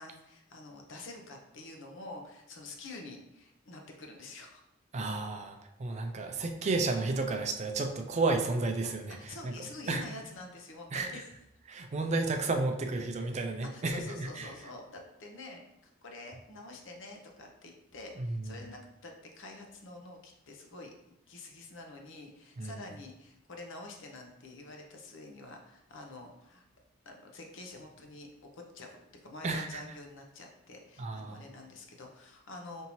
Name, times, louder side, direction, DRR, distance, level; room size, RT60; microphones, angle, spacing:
voice 1, 0.0-4.6 9.2-11.3 13.7-20.9 21.3-26.6 27.0-28.3 28.5-29.0 29.2-32.9, left 2 dB, 65° left, 2 dB, 0.8 m, -47 dB
voice 2, 4.9-9.5 9.9-10.0 10.9-11.1 11.7-14.5 18.2-18.6 22.6-22.7 29.4-29.8 31.0-31.4, right 3 dB, 35° right, 5 dB, 0.4 m, -32 dB
5.3 x 2.7 x 3.0 m, 0.87 s
head